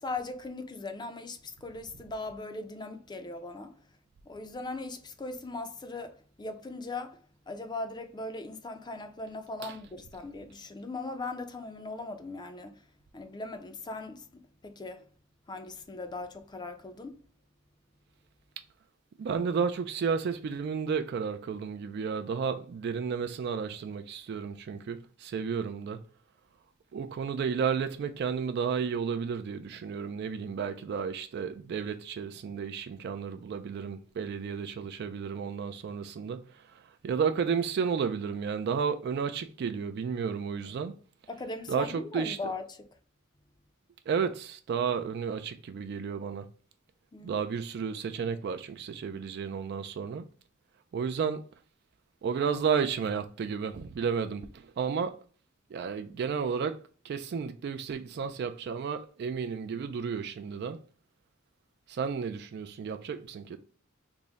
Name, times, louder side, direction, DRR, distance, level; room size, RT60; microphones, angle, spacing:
voice 1, 0.0-3.7 4.3-12.8 13.1-14.3 14.6-15.0 15.5-17.2 41.3-42.8 47.1-47.5, left 2 dB, 20° left, 0.4 m, -39 dB
voice 2, 19.2-26.0 26.9-40.9 41.7-42.5 44.1-46.5 47.2-50.2 50.9-51.4 52.2-55.2 55.7-60.8 61.9-63.6, right 6 dB, 55° right, 0.3 m, -32 dB
3.5 x 2.1 x 3.8 m
head